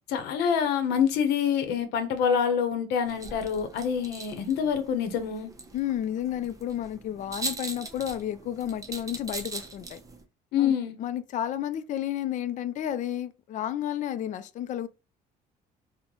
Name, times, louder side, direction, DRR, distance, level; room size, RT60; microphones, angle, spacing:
voice 1, 0.1-5.5 10.5-10.9, left 7 dB, 85° left, 0.7 m, -26 dB
sound 1, 3.0-10.2, right 3 dB, 20° right, 0.6 m, -41 dB
voice 2, 5.7-10.0 10.6-10.7 11.0-14.9, left 11 dB, 50° left, 0.4 m, -31 dB
3.7 x 2.1 x 3.0 m
cardioid pair, 110°, 17 cm